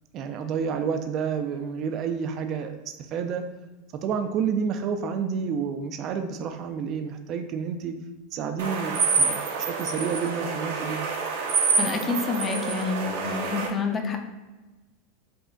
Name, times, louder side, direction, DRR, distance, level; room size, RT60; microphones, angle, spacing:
voice 1, 0.1-3.4 4.0-8.0 8.3-11.0, right 6 dB, 45° right, 7 dB, 0.4 m, -29 dB
sound 1, 8.6-13.7, right 4 dB, 75° right, 0.8 m, -27 dB
voice 2, 11.8-14.2, left 5 dB, 25° left, 4 dB, 0.7 m, -28 dB
5.1 x 2.5 x 3.7 m, 1.2 s
hypercardioid pair, 95°, 0 cm